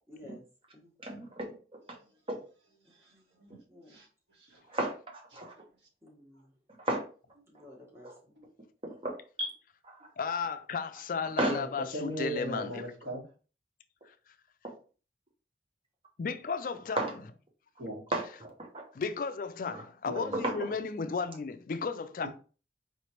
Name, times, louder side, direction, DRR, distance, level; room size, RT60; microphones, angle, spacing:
voice 1, 0.1-0.4 0.7-0.9 2.8-3.3 3.7-4.0 6.0-6.5 7.5-8.3, left 1 dB, 15° right, 1.5 m, -53 dB
voice 2, 1.0-1.8 2.3-2.4 4.7-4.9 5.3-5.5 6.8-7.0 8.0-8.1 8.8-9.5 9.9-10.0 11.4-11.6 14.6-14.7 17.0-17.1 18.1-18.8 19.7-19.8 20.3-20.6, right 1 dB, 30° right, 1.0 m, -33 dB
voice 3, 4.4-4.8 5.3-5.4 8.4-8.5 11.5-11.7 11.9-13.2 17.8-18.0 20.1-20.3 22.2-22.3, equal, 80° right, 1.9 m, -38 dB
voice 4, 10.2-12.8 16.2-17.0 18.9-22.3, left 5 dB, 50° left, 0.4 m, -34 dB
4.8 x 3.1 x 3.0 m
head